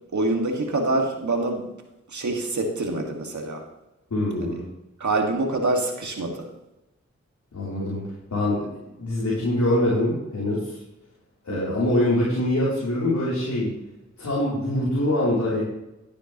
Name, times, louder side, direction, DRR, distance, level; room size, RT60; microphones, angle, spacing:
voice 1, 0.1-1.6 2.1-3.6 4.4-4.5 5.0-6.4 11.5-11.8, right 2 dB, 80° right, 2 dB, 1.8 m, -25 dB
voice 2, 4.1-4.6 7.5-8.0 8.3-8.6 9.0-10.7 11.4-13.7 14.2-15.6, left 1 dB, 85° left, -8 dB, 3.3 m, -24 dB
12.5 x 9.8 x 3.0 m, 0.94 s
cardioid pair, 40°, 29 cm